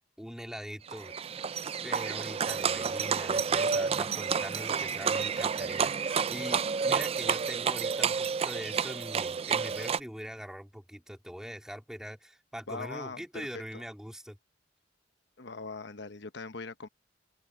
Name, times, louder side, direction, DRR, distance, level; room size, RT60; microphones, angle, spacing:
voice 1, 0.2-1.5 1.8-14.4, equal, 5° right, 3.1 m, -43 dB
Livestock farm animals working animals, 0.9-10.0, right 6 dB, 30° right, 0.4 m, -30 dB
voice 2, 12.7-13.8 15.4-16.9, left 3 dB, 65° left, 1.1 m, -41 dB
open air
head